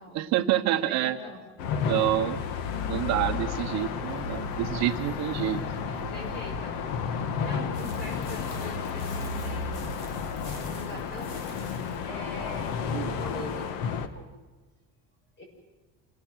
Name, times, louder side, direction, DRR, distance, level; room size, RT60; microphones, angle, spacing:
voice 1, 0.1-1.2 1.8-2.4 2.9-5.6 12.9-13.1, right 13 dB, 55° right, 7 dB, 1.1 m, -27 dB
voice 2, 0.7-1.4 5.8-10.3 10.6-11.4 12.0-14.3 15.4-15.5, equal, 30° left, 3 dB, 6.5 m, -43 dB
sound 1, 1.6-14.1, left 6 dB, 90° left, 1.7 m, -32 dB
sound 2, 7.7-12.1, left 2 dB, 65° left, 5.3 m, -47 dB
27.5 x 19.0 x 6.4 m, 1.3 s
cardioid pair, 175°, 33 cm